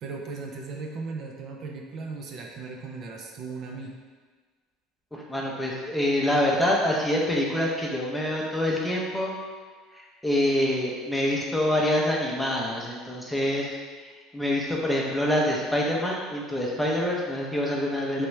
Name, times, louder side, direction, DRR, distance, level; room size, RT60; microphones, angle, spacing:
voice 1, 0.0-3.9, right 4 dB, 50° right, 1 dB, 0.4 m, -37 dB
voice 2, 5.1-9.3 9.9-18.3, left 1 dB, 5° left, -3 dB, 0.6 m, -26 dB
3.3 x 2.9 x 3.1 m, 1.5 s
cardioid pair, 125°, 0 cm